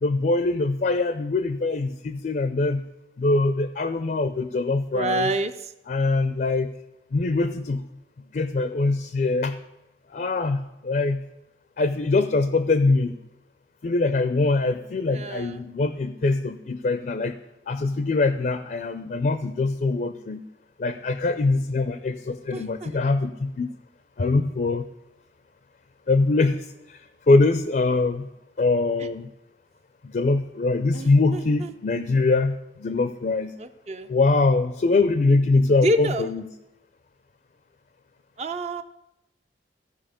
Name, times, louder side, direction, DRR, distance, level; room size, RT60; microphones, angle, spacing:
voice 1, 0.0-2.8 3.2-5.3 5.9-6.7 7.1-7.8 8.3-9.6 10.1-11.2 11.8-13.2 13.8-17.4 17.7-20.4 20.8-23.7 24.2-24.9 26.1-27.0 27.3-28.3 28.6-29.3 30.1-33.5 34.1-36.4, left 3 dB, 45° left, 10 dB, 0.4 m, -23 dB
voice 2, 4.9-5.5 15.1-15.6 22.5-23.0 30.9-31.7 33.6-34.1 35.8-36.4 38.4-38.8, right 1 dB, 35° right, 9 dB, 0.4 m, -28 dB
14.5 x 4.9 x 5.1 m, 0.92 s
head